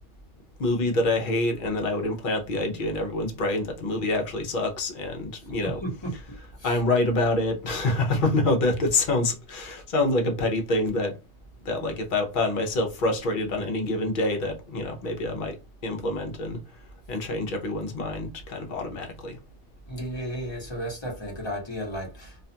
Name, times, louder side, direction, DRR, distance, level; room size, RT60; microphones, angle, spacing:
voice 1, 0.6-5.8 6.6-11.1 11.6-15.6 15.8-16.6 17.1-19.4, left 2 dB, 50° left, 0.8 m, -26 dB
voice 2, 5.6-6.8 19.9-22.4, right 1 dB, 25° left, 0.9 m, -34 dB
2.5 x 2.3 x 2.7 m
omnidirectional pair, 1.3 m